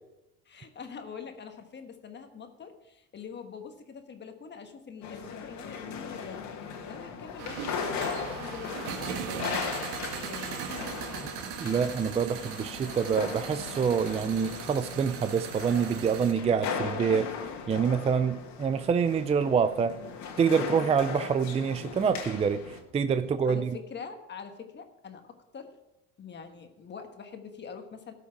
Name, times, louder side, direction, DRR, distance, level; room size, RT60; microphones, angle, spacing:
voice 1, 0.4-10.6 10.9-11.3 23.4-25.8 26.2-28.1, left 6 dB, 35° left, 6 dB, 1.3 m, -44 dB
sound 1, 5.0-22.8, left 6 dB, 65° left, 1.8 m, -38 dB
sound 2, 7.4-16.3, right 7 dB, 90° right, 1.4 m, -39 dB
voice 2, 11.6-17.3 17.7-20.0 20.4-23.7, right 6 dB, 20° right, 12 dB, 0.4 m, -26 dB
13.0 x 5.7 x 6.0 m, 0.91 s
supercardioid pair, 105°, 32 cm